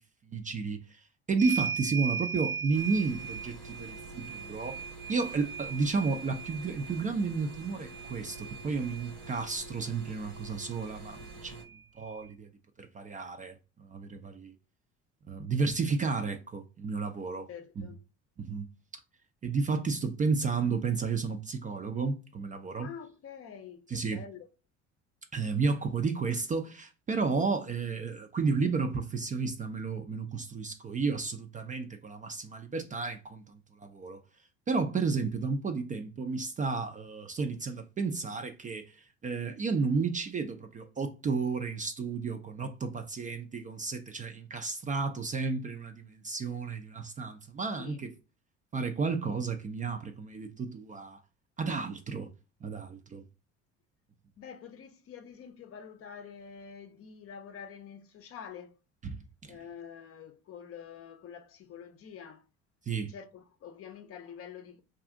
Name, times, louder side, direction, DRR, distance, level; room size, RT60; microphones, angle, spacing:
voice 1, 0.3-4.8 5.1-11.6 12.0-12.5 12.8-14.5 15.3-17.5 17.8-17.9 18.4-18.7 19.4-22.9 23.9-24.2 25.3-33.4 33.8-34.2 34.7-48.1 48.7-51.2 51.6-52.3 52.6-53.2 59.0-59.6 62.9-63.1, right 4 dB, 25° right, 0.4 m, -32 dB
sound 1, 1.4-9.5 10.8-10.9 11.2-12.2, right 6 dB, 65° right, 0.7 m, -39 dB
sound 2, 2.7-11.6, right 2 dB, 90° right, 1.3 m, -47 dB
voice 2, 17.5-18.0 22.7-24.5 47.7-48.0 54.4-58.8 59.5-62.5 63.1-64.8, left 7 dB, 40° left, 0.6 m, -47 dB
2.5 x 2.4 x 3.6 m
hypercardioid pair, 65°, 35 cm